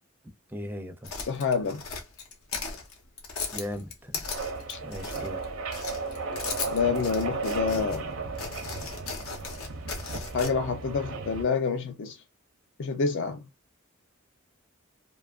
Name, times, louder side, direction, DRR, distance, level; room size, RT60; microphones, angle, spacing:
voice 1, 0.5-1.1 3.5-4.2 4.8-5.4, left 1 dB, 10° right, 0.4 m, -38 dB
sound 1, 1.0-5.4 5.7-8.0 8.4-10.5, left 4 dB, 85° left, 0.9 m, -36 dB
voice 2, 1.2-1.8 4.7-4.8 6.7-8.1 10.3-12.2 12.8-13.4, left 5 dB, 60° left, 0.4 m, -27 dB
sound 2, 4.2-11.4, right 3 dB, 65° right, 0.6 m, -35 dB
2.7 x 2.3 x 2.3 m
head